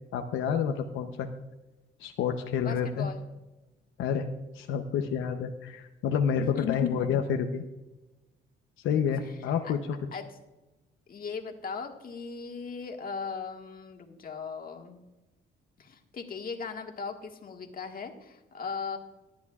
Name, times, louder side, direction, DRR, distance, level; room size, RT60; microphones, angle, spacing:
voice 1, 0.1-1.3 2.0-3.1 4.0-4.3 4.5-7.6 8.8-10.0, left 7 dB, 85° left, 5 dB, 0.7 m, -29 dB
voice 2, 2.6-3.2 6.3-6.9 8.9-9.4 9.6-9.7 10.1-10.3 11.1-15.0 15.8-19.0, left 5 dB, 45° left, 3 dB, 1.6 m, -38 dB
18.5 x 10.5 x 2.4 m, 1.1 s
cardioid pair, 90°, 20 cm